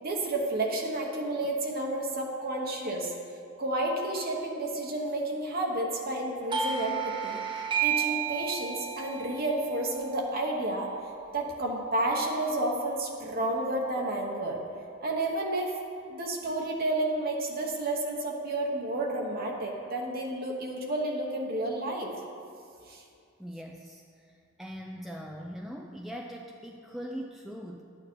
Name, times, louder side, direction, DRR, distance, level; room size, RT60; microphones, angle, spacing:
voice 1, 0.0-3.1 3.6-7.4 7.8-10.9 11.3-14.6 15.0-15.7 16.1-22.1 22.9-23.0, right 1 dB, 50° right, -1 dB, 1.2 m, -31 dB
Doorbell, 6.5-11.8, right 8 dB, 25° right, 0.8 m, -33 dB
voice 2, 23.4-27.8, equal, ahead, 0 dB, 0.5 m, -41 dB
11.5 x 8.9 x 4.5 m, 2.4 s
head